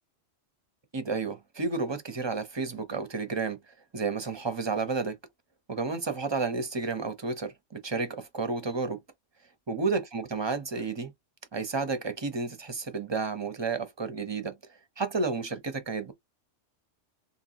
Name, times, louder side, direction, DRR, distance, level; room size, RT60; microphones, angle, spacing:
voice 1, 0.9-3.6 3.9-5.2 5.7-9.0 9.7-11.1 11.5-14.6 15.0-16.1, right 4 dB, 30° right, 0.5 m, -31 dB
3.9 x 2.7 x 2.8 m
omnidirectional pair, 1.3 m